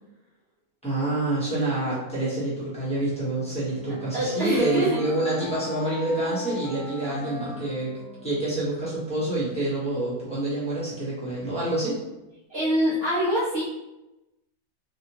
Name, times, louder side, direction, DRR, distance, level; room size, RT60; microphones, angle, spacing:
voice 1, 0.8-8.0 8.2-12.0, right 2 dB, 5° left, -10 dB, 1.0 m, -27 dB
Wind instrument woodwind instrument, 3.1-8.9, left 2 dB, 80° right, 1.5 m, -40 dB
voice 2, 4.1-5.0 12.5-13.6, equal, 50° right, -9 dB, 0.9 m, -24 dB
3.5 x 2.4 x 2.9 m, 1.0 s
omnidirectional pair, 1.5 m